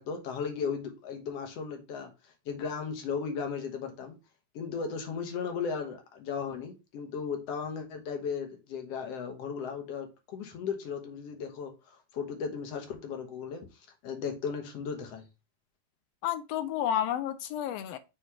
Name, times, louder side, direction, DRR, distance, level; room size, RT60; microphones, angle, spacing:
voice 1, 0.0-2.1 2.5-4.2 4.5-11.7 12.1-13.7 14.0-15.2, left 6 dB, 60° left, 2.1 m, -36 dB
voice 2, 16.2-18.0, left 10 dB, 90° left, 1.4 m, -31 dB
6.6 x 3.2 x 5.7 m
omnidirectional pair, 3.4 m